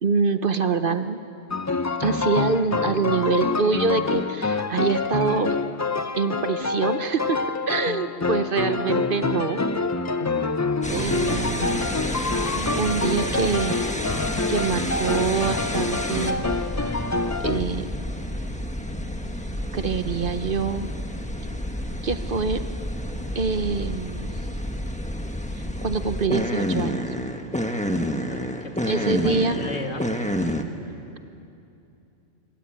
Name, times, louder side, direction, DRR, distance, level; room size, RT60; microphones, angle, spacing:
voice 1, 0.0-1.2 2.0-5.6 6.2-9.6 10.9-11.8 12.3-13.9 14.5-16.4 17.4-18.0 19.7-20.9 22.0-22.6 23.3-24.3 25.6-27.1 28.9-29.6, right 4 dB, 50° right, 10 dB, 1.0 m, -25 dB
sound 1, 1.5-17.6, left 3 dB, 25° left, 0.4 m, -27 dB
sound 2, 2.0-17.3, left 7 dB, 45° left, 0.8 m, -38 dB
sound 3, 10.8-30.6, equal, 5° left, 1.1 m, -29 dB
voice 2, 28.2-30.1, left 3 dB, 80° left, 3 dB, 2.5 m, -35 dB
25.0 x 23.0 x 8.9 m, 2.7 s
omnidirectional pair, 1.3 m